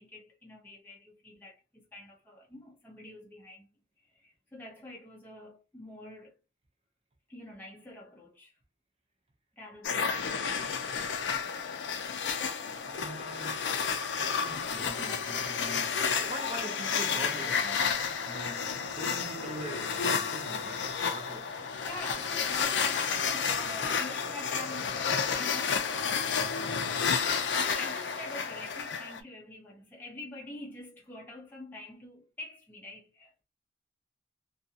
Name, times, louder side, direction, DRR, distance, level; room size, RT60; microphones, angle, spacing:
voice 1, 0.0-3.7 4.0-6.4 7.3-8.6 9.5-10.7 13.9-14.0 21.5-33.4, left 1 dB, 10° left, 0.4 m, -46 dB
sound 1, 9.8-29.2, left 6 dB, 90° left, 0.4 m, -31 dB
voice 2, 12.8-13.6 14.1-22.5, right 1 dB, 35° right, 0.7 m, -44 dB
2.5 x 2.3 x 2.7 m
head